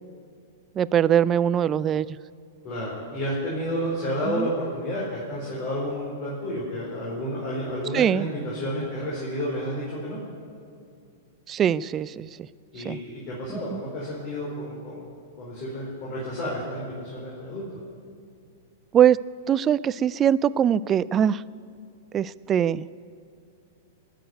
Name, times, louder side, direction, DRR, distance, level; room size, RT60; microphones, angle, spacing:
voice 1, 0.8-2.1 4.3-4.5 7.9-8.3 11.5-12.3 12.9-13.0 13.7-13.8 18.9-19.2 19.5-21.4 22.1-22.9, right 9 dB, 25° right, 19 dB, 0.4 m, -22 dB
voice 2, 2.6-10.2 12.7-15.0 15.4-17.6, equal, 45° left, -5 dB, 4.5 m, -31 dB
19.5 x 6.7 x 9.3 m, 2.4 s
hypercardioid pair, 110°, 0 cm